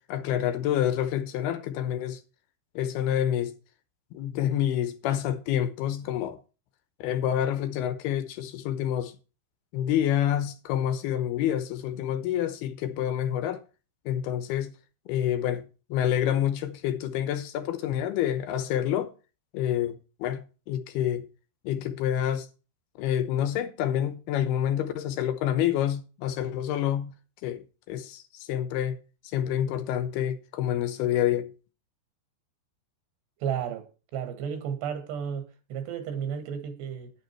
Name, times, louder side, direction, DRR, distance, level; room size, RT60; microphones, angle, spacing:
voice 1, 0.1-2.2 2.8-3.5 4.1-6.4 7.0-9.1 9.7-13.6 14.1-14.7 15.1-15.6 15.9-19.1 19.5-21.2 21.6-22.5 23.0-27.1 27.4-27.6 27.9-29.0 29.3-31.5, left 10 dB, 75° left, 2.8 m, -28 dB
voice 2, 33.4-33.9 34.1-37.1, right 8 dB, 85° right, 3.8 m, -33 dB
9.7 x 9.1 x 4.5 m
omnidirectional pair, 4.8 m